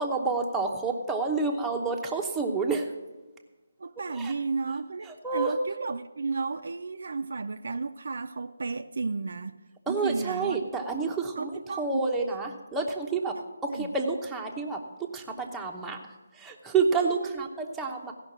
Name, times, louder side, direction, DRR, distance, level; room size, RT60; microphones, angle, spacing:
voice 1, 0.0-2.9 4.1-4.3 5.1-5.6 9.9-16.0 16.3-18.1, right 4 dB, 5° right, -1 dB, 0.9 m, -29 dB
voice 2, 3.8-9.6 9.9-10.6 11.4-12.4 13.4-13.5 13.7-14.0 16.9-17.5, right 4 dB, 60° right, 9 dB, 0.5 m, -33 dB
15.5 x 5.9 x 7.2 m, 1.2 s
figure-of-eight pair, 160°, 0 cm